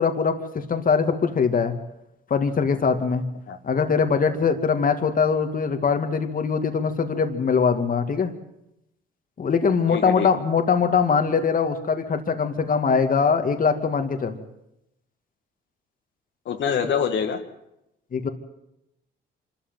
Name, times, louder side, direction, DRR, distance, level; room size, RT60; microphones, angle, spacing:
voice 1, 0.0-1.7 2.3-3.2 3.6-8.3 9.4-14.4 18.1-18.3, left 5 dB, 45° left, 6 dB, 2.4 m, -22 dB
voice 2, 9.9-10.3 16.5-17.4, left 7 dB, 65° left, 4 dB, 2.3 m, -25 dB
26.0 x 13.5 x 9.4 m, 0.85 s
cardioid pair, 90°, 20 cm